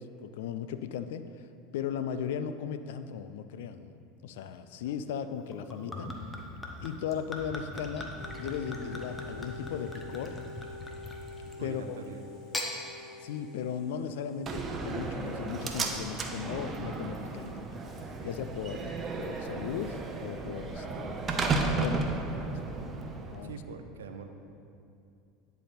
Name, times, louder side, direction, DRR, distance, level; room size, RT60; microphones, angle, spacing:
voice 1, 0.0-1.5 1.7-6.1 6.8-10.4 11.6-12.0 13.2-17.7 18.2-21.4 21.6-22.6 23.2-23.6, left 8 dB, 75° left, 11 dB, 0.3 m, -37 dB
Gurgling / Chink clink / Liquid, 5.5-11.7 12.3-12.7, left 1 dB, 15° left, 0.9 m, -40 dB
sound 1, 8.2-15.6, left 3 dB, 50° left, 1.2 m, -47 dB
voice 2, 11.6-12.2 23.4-24.3, right 5 dB, 85° right, 6 dB, 0.5 m, -43 dB
Slam, 14.5-23.5, right 3 dB, 30° right, 0.7 m, -34 dB
10.0 x 3.5 x 4.3 m, 2.5 s
hypercardioid pair, 85°, 0 cm